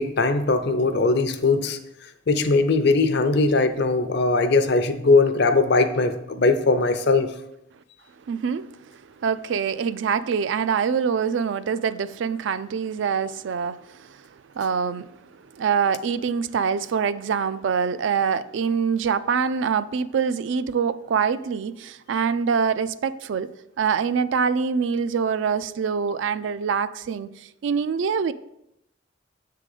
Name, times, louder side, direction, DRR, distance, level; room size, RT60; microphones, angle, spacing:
voice 1, 0.0-1.8 2.3-7.3, left 3 dB, 60° left, 0.6 m, -20 dB
voice 2, 8.3-8.8 9.2-14.3 14.6-23.5 23.8-28.3, right 6 dB, 65° right, 0.3 m, -25 dB
7.4 x 3.8 x 4.8 m
head